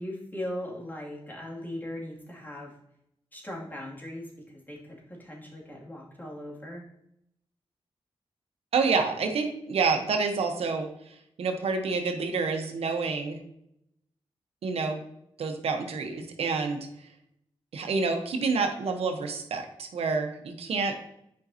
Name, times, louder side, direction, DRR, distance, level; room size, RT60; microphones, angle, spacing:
voice 1, 0.0-2.7 3.3-6.8, left 1 dB, 20° left, -3 dB, 2.5 m, -39 dB
voice 2, 8.7-13.4 14.6-15.0 15.4-16.9 17.7-21.0, right 4 dB, 85° right, 5 dB, 0.9 m, -28 dB
8.7 x 5.2 x 2.8 m, 0.77 s
cardioid pair, 65°, 10 cm